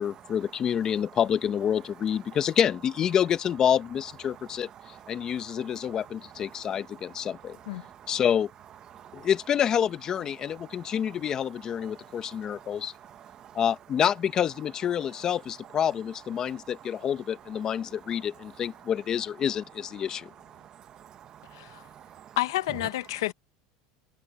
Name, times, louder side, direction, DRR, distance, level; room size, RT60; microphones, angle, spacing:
voice 1, 0.0-4.7 5.1-7.6 8.1-8.5 9.1-12.9 13.5-20.3, left 9 dB, 30° left, 1.2 m, -28 dB
voice 2, 4.8-6.0 6.5-8.2 8.9-9.3 10.6-10.9 11.8-13.6 16.4-16.7 17.8-17.9 20.6-22.4, right 10 dB, 35° right, 1.2 m, -50 dB
voice 3, 21.5-21.8 22.4-23.3, left 16 dB, 90° left, 1.1 m, -29 dB
supercardioid pair, 140°, 2 cm